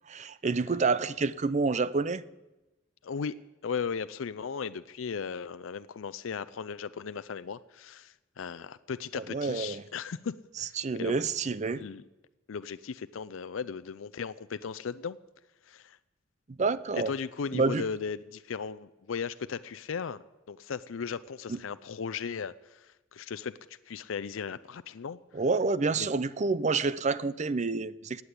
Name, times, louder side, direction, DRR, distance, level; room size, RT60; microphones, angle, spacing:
voice 1, 0.1-2.2 9.1-9.8 10.8-11.8 16.5-17.1 17.5-17.8 21.5-21.6 25.3-28.2, right 4 dB, 35° right, 0.5 m, -28 dB
voice 2, 3.0-3.4 3.6-11.2 11.7-12.0 12.5-15.2 15.6-16.0 16.9-20.2 20.5-25.2 25.9-26.1, left 6 dB, 90° left, 0.5 m, -37 dB
16.5 x 9.6 x 8.3 m
head